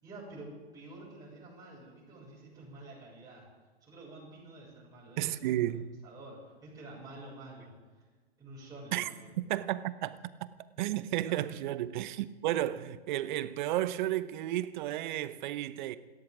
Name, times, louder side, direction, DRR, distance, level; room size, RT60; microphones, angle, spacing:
voice 1, 0.0-3.5 3.8-5.4 6.0-7.7 8.4-9.3 11.2-11.5, right 2 dB, 10° right, 6.4 m, -49 dB
voice 2, 5.2-5.9 8.9-9.1 9.4-10.5 10.8-16.0, right 13 dB, 50° right, 1.0 m, -33 dB
28.0 x 13.5 x 3.7 m
hypercardioid pair, 125°, 31 cm